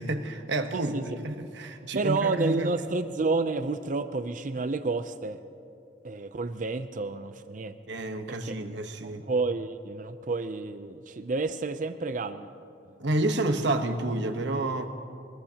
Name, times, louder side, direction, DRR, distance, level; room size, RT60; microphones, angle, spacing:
voice 1, 0.0-2.7 7.9-9.3 13.0-14.9, right 2 dB, 65° right, 6 dB, 1.1 m, -29 dB
voice 2, 0.7-1.0 1.9-5.4 6.0-7.8 8.3-8.8 9.0-12.5, right 3 dB, 40° right, 9 dB, 0.5 m, -30 dB
23.5 x 21.0 x 2.9 m, 2.5 s
head